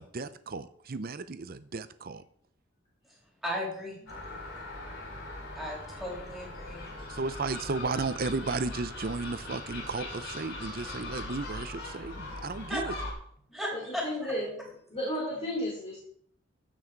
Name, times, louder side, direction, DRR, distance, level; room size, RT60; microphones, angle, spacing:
voice 1, 0.0-2.2 7.1-13.0, right 3 dB, 50° right, 14 dB, 0.6 m, -34 dB
voice 2, 3.4-4.0 5.5-6.9 12.7-12.8 13.5-14.3, equal, ahead, -2 dB, 3.5 m, -35 dB
Gull seagull, 4.1-13.1, left 2 dB, 55° left, 5.0 m, -40 dB
voice 3, 4.9-5.2 6.8-7.2 7.8-7.9 12.4-12.5 13.5-16.0, equal, 30° left, -5 dB, 3.2 m, -36 dB
15.5 x 6.2 x 4.6 m, 0.65 s
head